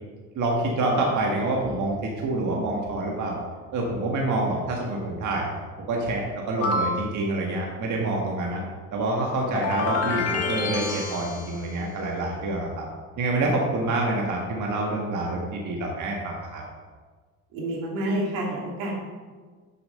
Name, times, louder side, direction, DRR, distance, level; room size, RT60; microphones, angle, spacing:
voice 1, 0.3-2.0 2.2-3.4 3.7-5.5 5.9-8.6 8.9-12.9 13.2-16.6, right 2 dB, 55° right, -1 dB, 1.6 m, -27 dB
sound 1, 6.6-7.1 9.6-11.7, left 3 dB, 45° left, 1.3 m, -28 dB
voice 2, 17.5-19.0, right 1 dB, 90° right, -2 dB, 2.3 m, -28 dB
7.1 x 5.7 x 5.5 m, 1.5 s
cardioid pair, 105°, 35 cm